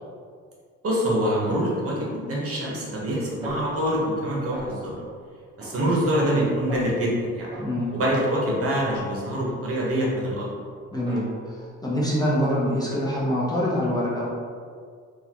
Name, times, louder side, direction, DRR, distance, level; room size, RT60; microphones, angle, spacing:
voice 1, 0.8-4.9 5.6-7.5 7.9-10.5, equal, 50° right, -4 dB, 1.1 m, -25 dB
Snare drum, 3.4-4.2 4.5-5.1 5.6-6.4 6.7-7.1 7.5-9.6 10.0-10.5 10.9-11.6, equal, 15° right, 1.0 m, -40 dB
voice 2, 7.6-7.9 10.9-11.6 11.8-14.3, equal, 15° left, -7 dB, 0.9 m, -25 dB
3.9 x 2.4 x 2.9 m, 2.1 s
cardioid pair, 90°, 30 cm